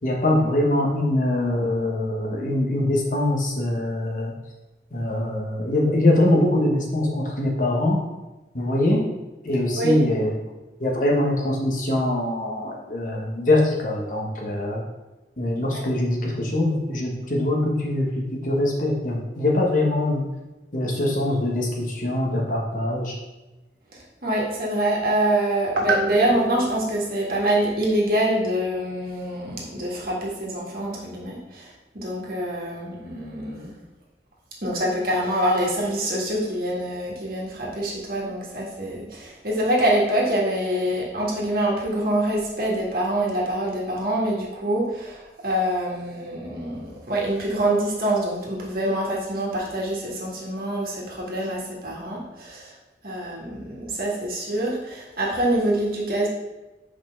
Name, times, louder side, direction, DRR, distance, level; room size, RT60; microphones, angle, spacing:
voice 1, 0.0-4.3 4.9-8.0 8.5-9.0 9.4-10.4 10.8-14.8 15.4-20.3 20.7-23.1, left 1 dB, 45° left, -1 dB, 1.3 m, -23 dB
voice 2, 23.9-33.7 34.6-52.8 53.0-56.3, right 1 dB, 55° right, -3 dB, 1.8 m, -25 dB
5.0 x 4.4 x 5.8 m, 1.1 s
head